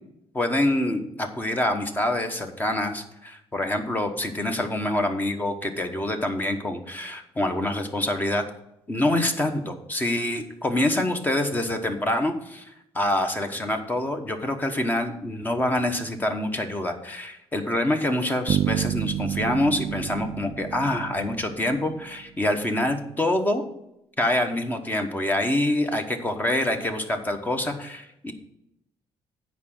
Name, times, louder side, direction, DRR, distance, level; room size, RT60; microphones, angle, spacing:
voice 1, 0.3-8.4 8.9-12.7 12.9-23.6 24.2-28.3, left 1 dB, 15° left, 5 dB, 1.0 m, -26 dB
sound 1, 18.5-22.2, right 11 dB, 40° right, 0.4 m, -29 dB
9.3 x 4.9 x 7.5 m, 0.83 s
cardioid pair, 140°, 11 cm